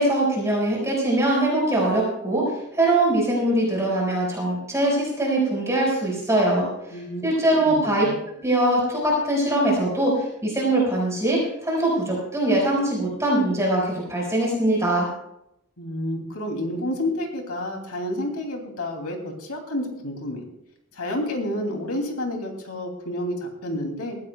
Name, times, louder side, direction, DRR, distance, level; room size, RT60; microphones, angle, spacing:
voice 1, 0.0-8.0 8.4-15.1, right 1 dB, 15° right, -3 dB, 5.1 m, -22 dB
voice 2, 6.9-8.2 15.8-20.4 20.9-24.2, left 1 dB, 80° left, 2 dB, 2.9 m, -30 dB
20.5 x 15.5 x 2.3 m, 0.81 s
head